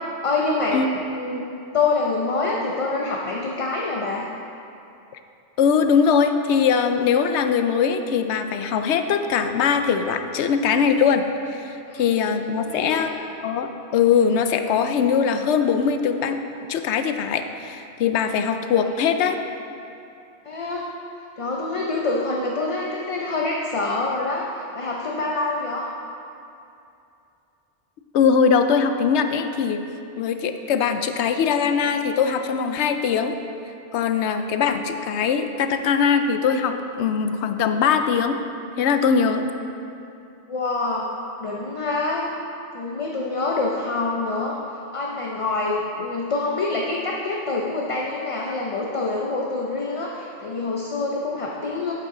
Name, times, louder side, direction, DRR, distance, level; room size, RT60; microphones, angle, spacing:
voice 1, 0.2-1.4 1.7-4.3 11.9-12.0 12.7-13.2 18.7-18.9 20.4-20.9 21.4-25.9 40.5-41.1 41.4-42.3 42.7-44.6 44.9-51.9, left 3 dB, 40° left, -2 dB, 0.6 m, -26 dB
voice 2, 5.6-11.2 11.5-13.1 13.4-16.4 16.7-19.4 28.1-29.8 30.2-33.3 33.9-38.4 38.8-39.4, left 6 dB, 90° left, 8 dB, 0.9 m, -21 dB
8.3 x 7.9 x 3.7 m, 2.6 s
omnidirectional pair, 1.1 m